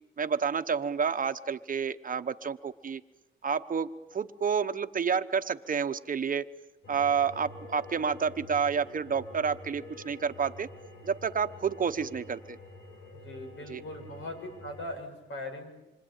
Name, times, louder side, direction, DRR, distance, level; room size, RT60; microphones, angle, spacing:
voice 1, 0.2-3.0 3.4-6.5 6.9-10.7 11.0-12.6 13.7-13.8, right 6 dB, 40° right, 9 dB, 1.0 m, -29 dB
sound 1, 6.8-15.0, left 2 dB, 85° left, 3.4 m, -48 dB
voice 2, 13.2-15.7, left 1 dB, 70° left, 4 dB, 7.4 m, -40 dB
27.0 x 24.5 x 9.0 m, 1.0 s
cardioid pair, 110°, 21 cm